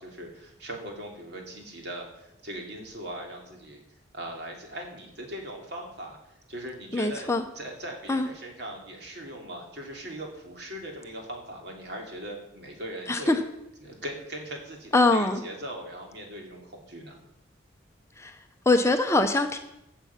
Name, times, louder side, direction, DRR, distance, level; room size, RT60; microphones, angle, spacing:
voice 1, 0.0-3.8 4.1-6.2 6.5-13.4 13.8-17.2, right 1 dB, 60° right, 1 dB, 2.8 m, -40 dB
voice 2, 6.9-7.4 8.1-8.3 13.1-13.4 14.9-15.4 18.2-18.4 18.7-19.6, left 2 dB, 15° left, 6 dB, 0.6 m, -23 dB
15.5 x 7.2 x 5.8 m, 0.86 s
head